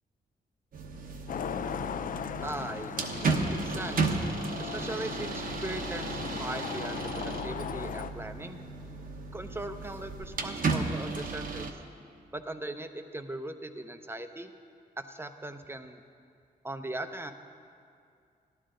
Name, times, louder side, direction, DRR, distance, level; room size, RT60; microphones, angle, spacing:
sound 1, 0.7-11.7, right 3 dB, 60° right, 0.9 m, -34 dB
Traffic noise roadway noise, 1.3-8.1, left 8 dB, 60° left, 0.4 m, -38 dB
voice 1, 2.4-4.2 4.6-8.6 9.3-11.7 12.3-14.5 15.0-16.0 16.6-17.3, right 1 dB, 15° right, 8 dB, 0.7 m, -39 dB
13.0 x 11.0 x 3.8 m, 2.3 s
cardioid pair, 80°, 16 cm